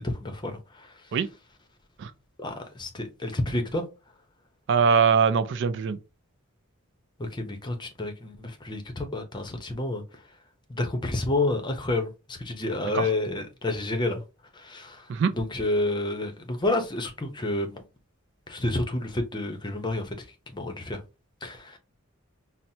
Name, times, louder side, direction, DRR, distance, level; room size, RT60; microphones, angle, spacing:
voice 1, 0.2-0.5 2.4-3.8 7.2-10.0 10.7-14.2 14.6-15.0 15.3-17.8 18.5-20.1 20.5-21.0 21.4-21.8, left 2 dB, 20° left, 0.6 m, -29 dB
voice 2, 4.7-6.0 12.9-13.1 15.1-15.3, right 6 dB, 55° right, 0.3 m, -22 dB
5.6 x 2.1 x 2.7 m
head